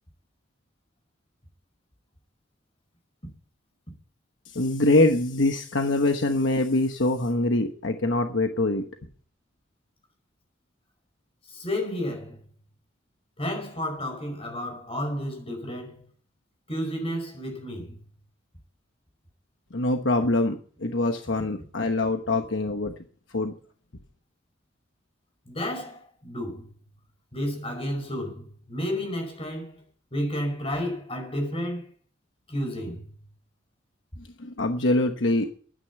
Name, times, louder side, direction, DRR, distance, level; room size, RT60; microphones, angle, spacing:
voice 1, 4.5-8.8 19.7-22.9 23.3-23.5 34.2-35.6, left 2 dB, 65° left, 1.1 m, -24 dB
voice 2, 11.5-12.4 13.4-16.0 16.7-18.0 25.4-26.7 27.3-29.8 30.1-31.9 32.5-33.1, equal, 30° left, 5.0 m, -31 dB
12.5 x 9.8 x 7.0 m
head